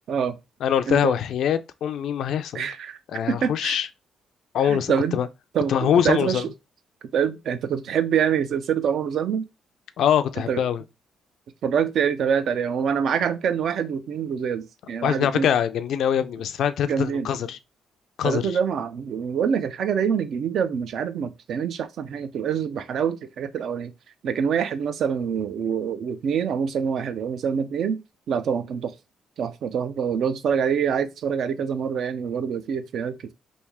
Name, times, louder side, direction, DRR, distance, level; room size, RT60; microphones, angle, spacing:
voice 1, 0.6-2.7 3.1-3.9 4.5-5.3 5.7-6.4 10.0-10.8 15.0-17.6 18.2-18.5, left 9 dB, 75° left, 0.4 m, -23 dB
voice 2, 2.5-3.0 3.3-3.8 4.6-5.2 5.5-6.4 7.1-9.4 10.5-10.6 11.6-15.5 16.9-17.3 18.2-23.9 24.2-28.0 28.3-28.9 29.4-33.3, right 7 dB, 65° right, 0.4 m, -25 dB
3.3 x 2.6 x 3.4 m
cardioid pair, 90°, 0 cm